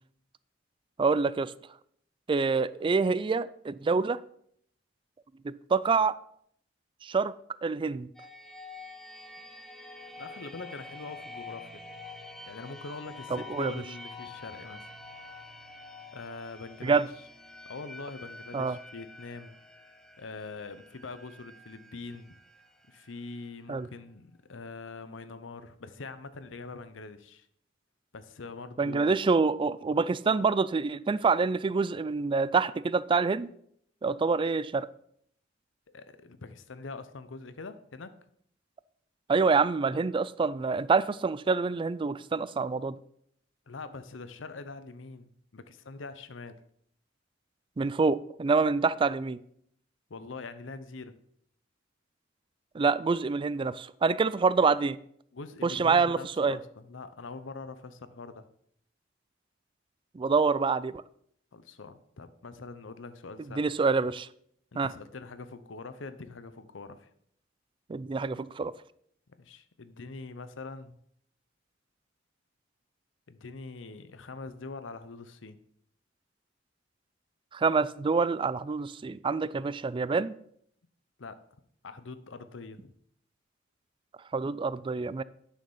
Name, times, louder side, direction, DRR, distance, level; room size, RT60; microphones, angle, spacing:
voice 1, 1.0-1.5 2.3-4.2 5.4-6.2 7.0-7.3 7.6-8.1 13.3-13.7 16.8-17.1 18.5-18.8 23.7-23.9 28.8-33.5 34.0-34.9 39.3-42.9 47.8-49.4 52.7-55.0 55.6-56.6 60.1-61.0 63.6-64.3 64.8-64.9 67.9-68.7 77.5-80.3 84.3-85.2, right 4 dB, 25° right, 0.3 m, -26 dB
sound 1, 8.1-23.8, left 3 dB, ahead, 0.8 m, -47 dB
voice 2, 10.2-11.8 12.5-14.8 16.1-17.1 17.7-19.5 20.2-22.4 22.9-27.5 28.1-29.2 35.9-38.1 43.7-46.6 50.1-51.1 55.3-58.5 61.5-63.6 64.7-67.1 69.4-70.9 73.3-75.6 81.2-81.4 81.8-82.9, left 3 dB, 75° left, 0.7 m, -43 dB
9.5 x 6.5 x 5.5 m
head